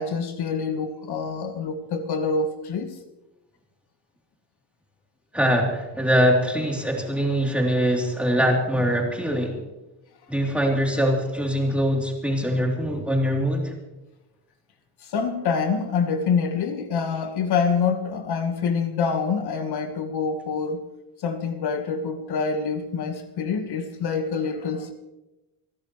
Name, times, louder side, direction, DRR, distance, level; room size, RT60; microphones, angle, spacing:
voice 1, 0.0-3.0 15.0-20.8 21.2-24.9, left 5 dB, 60° left, 1.5 m, -26 dB
voice 2, 5.3-9.6 10.3-13.7, equal, 5° right, 3.3 m, -23 dB
28.0 x 11.5 x 3.2 m
cardioid pair, 130°, 44 cm